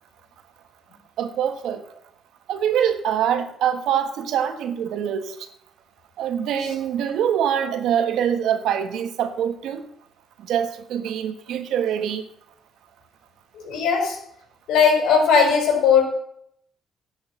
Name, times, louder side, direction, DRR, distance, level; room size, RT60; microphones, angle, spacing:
voice 1, 1.2-1.8 2.5-5.3 6.2-9.9 10.5-12.2, right 9 dB, 85° right, 9 dB, 1.4 m, -24 dB
voice 2, 13.5-14.2 14.7-16.1, left 6 dB, 85° left, 2 dB, 4.8 m, -18 dB
11.5 x 6.4 x 8.9 m, 0.69 s
cardioid pair, 90°, 0 cm